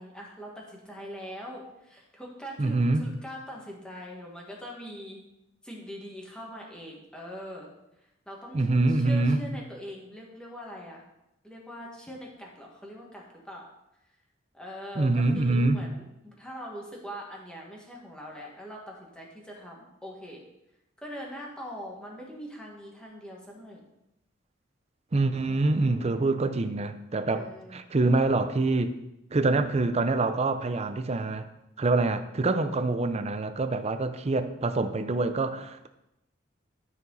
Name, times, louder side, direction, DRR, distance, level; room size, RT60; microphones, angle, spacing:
voice 1, 0.0-5.2 5.6-7.7 8.0-11.0 11.4-13.7 14.5-20.4 21.0-23.8 27.3-27.8, equal, 5° left, -2 dB, 1.7 m, -42 dB
voice 2, 2.6-3.1 8.5-9.4 15.0-15.8 25.1-28.9 29.3-31.5 31.8-35.9, right 2 dB, 35° right, 9 dB, 0.5 m, -25 dB
12.5 x 4.7 x 4.0 m, 0.87 s
head